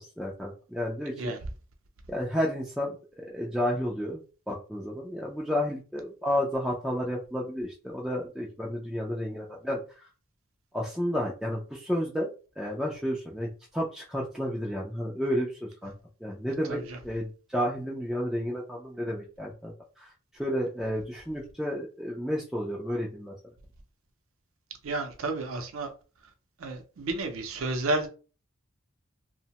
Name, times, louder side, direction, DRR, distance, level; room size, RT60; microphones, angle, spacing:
voice 1, 0.0-1.3 2.1-4.2 4.5-10.1 10.7-12.3 12.6-15.9 16.2-23.3, equal, ahead, 0.3 m, -31 dB
voice 2, 24.8-25.9 26.6-28.1, right 2 dB, 75° right, 0.5 m, -31 dB
2.7 x 2.1 x 2.8 m
head